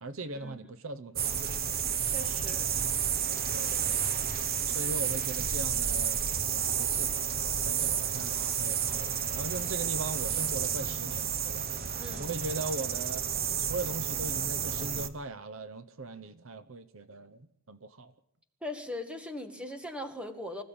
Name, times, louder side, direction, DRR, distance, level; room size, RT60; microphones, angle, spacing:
voice 1, 0.0-1.5 3.5-4.0 4.7-7.3 7.6-13.2 13.6-18.1, right 2 dB, 65° right, 0.9 m, -40 dB
sound 1, 1.2-15.1, right 8 dB, 45° right, 1.1 m, -31 dB
voice 2, 2.1-2.7 12.0-12.3 18.6-20.6, left 1 dB, 5° right, 1.9 m, -40 dB
25.0 x 15.0 x 8.7 m
head